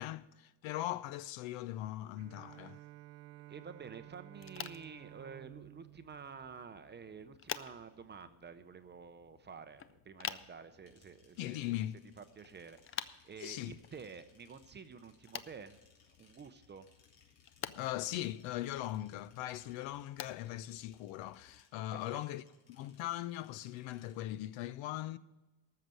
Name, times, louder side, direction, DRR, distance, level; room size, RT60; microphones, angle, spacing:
voice 1, 0.0-2.8 11.4-12.0 13.4-13.7 17.6-22.4 22.7-25.2, left 14 dB, 65° left, 0.7 m, -40 dB
Bowed string instrument, 2.2-7.4, right 16 dB, 70° right, 0.6 m, -55 dB
voice 2, 3.5-11.8 12.2-15.8 16.2-16.9 21.9-22.2, right 5 dB, 20° right, 0.6 m, -50 dB
sound 1, 4.3-21.6, left 9 dB, 30° left, 0.4 m, -50 dB
sound 2, 10.9-24.2, left 5 dB, 85° left, 3.2 m, -69 dB
13.5 x 6.7 x 7.6 m
supercardioid pair, 110°, 50 cm